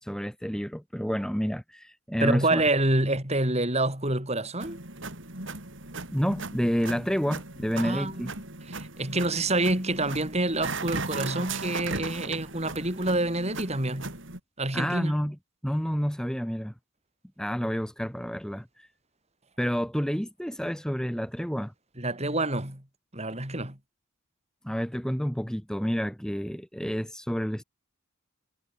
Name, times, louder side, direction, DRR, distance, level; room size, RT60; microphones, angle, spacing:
voice 1, 0.0-2.7 6.1-8.3 14.7-15.4 15.6-16.7 17.4-18.9 19.6-21.7 24.6-27.6, equal, 5° left, 2.3 m, -29 dB
voice 2, 2.2-4.8 7.8-14.1 14.6-15.1 22.0-22.8 23.1-23.8, right 2 dB, 30° right, 5.9 m, -27 dB
sound 1, 4.6-14.4, right 3 dB, 60° right, 5.2 m, -37 dB
head